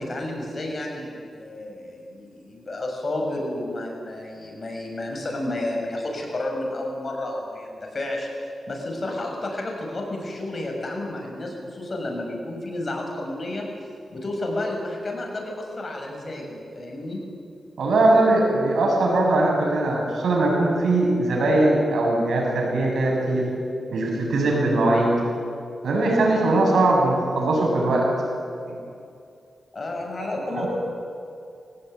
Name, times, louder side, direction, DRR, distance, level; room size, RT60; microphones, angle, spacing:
voice 1, 0.0-8.3 8.7-13.7 14.1-17.2 29.7-30.7, left 1 dB, 45° left, 0 dB, 6.7 m, -31 dB
voice 2, 17.8-23.5 23.9-25.2 25.8-28.1 30.2-30.7, right 2 dB, 80° right, 0 dB, 7.1 m, -21 dB
21.5 x 18.0 x 9.3 m, 2.5 s
cardioid pair, 75°, 0 cm